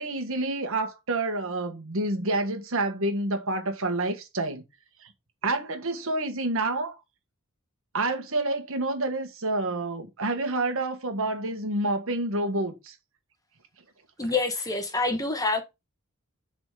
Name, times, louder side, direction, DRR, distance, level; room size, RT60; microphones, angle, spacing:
voice 1, 0.0-4.6 5.0-5.1 5.4-7.0 7.9-12.9, right 2 dB, 65° right, 1.6 m, -28 dB
voice 2, 14.2-15.6, left 3 dB, 15° left, 1.3 m, -26 dB
7.2 x 4.1 x 5.0 m
head